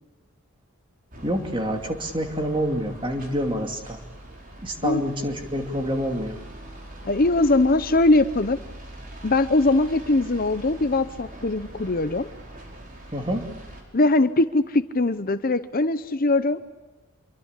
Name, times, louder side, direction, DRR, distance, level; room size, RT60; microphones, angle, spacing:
sound 1, 1.1-13.8, right 1 dB, 40° right, 5.5 m, -42 dB
voice 1, 1.2-4.0 4.6-6.4 13.1-13.5, equal, 20° right, 4 dB, 2.7 m, -27 dB
voice 2, 7.0-8.6 9.2-12.3 13.9-16.6, left 2 dB, 40° left, 12 dB, 0.8 m, -21 dB
27.5 x 23.5 x 8.3 m, 1.1 s
head